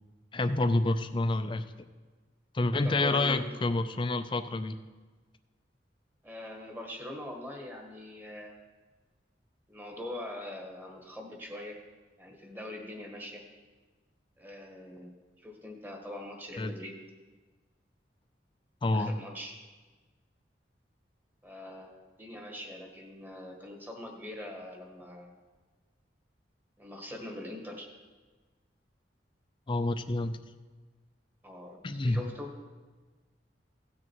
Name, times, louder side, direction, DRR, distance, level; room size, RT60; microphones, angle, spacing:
voice 1, 0.3-1.6 2.5-4.7 16.6-16.7 18.8-19.2 29.7-30.4 31.8-32.2, left 2 dB, 30° left, 10 dB, 0.5 m, -28 dB
voice 2, 2.7-3.4 6.2-8.6 9.7-11.8 12.2-13.4 14.4-17.0 18.9-19.6 21.4-25.3 26.8-27.9 31.4-32.5, left 1 dB, 10° right, 1 dB, 1.5 m, -42 dB
16.5 x 6.3 x 4.6 m, 1.3 s
head